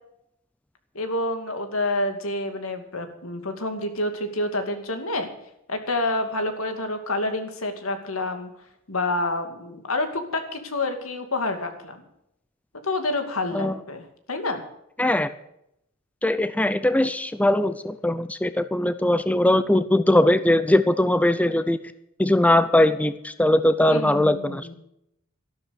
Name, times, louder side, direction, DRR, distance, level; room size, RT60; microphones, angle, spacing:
voice 1, 0.9-5.3 5.7-8.5 8.9-12.0 12.8-14.0 14.3-14.6 23.9-24.7, left 2 dB, 80° left, 7 dB, 2.5 m, -28 dB
voice 2, 15.0-15.3 16.2-21.8 22.2-24.7, left 1 dB, 5° left, 12 dB, 0.6 m, -20 dB
13.5 x 12.0 x 6.5 m, 0.78 s
head